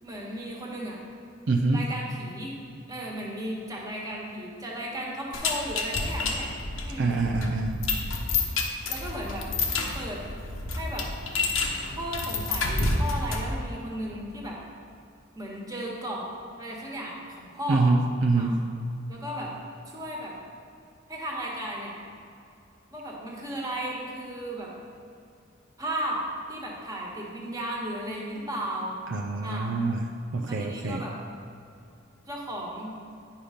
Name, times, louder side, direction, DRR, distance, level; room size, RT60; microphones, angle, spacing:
voice 1, 0.0-1.0 1.7-2.5 2.9-6.5 6.8-7.1 8.9-9.5 9.9-10.2 10.8-11.1 11.9-14.6 15.3-17.9 18.3-18.5 19.1-19.5 19.9-20.3 21.1-22.0 22.9-24.7 25.8-26.2 26.5-28.9 29.4-29.7 30.4-31.1 32.3-32.9, right 1 dB, 20° right, -3 dB, 1.5 m, -35 dB
voice 2, 1.5-1.8 7.0-7.8 17.7-18.6 29.1-31.0, right 3 dB, 65° right, 2 dB, 0.5 m, -25 dB
sound 1, 5.3-13.6, left 3 dB, 80° left, 1.0 m, -29 dB
9.6 x 5.6 x 5.1 m, 2.6 s
head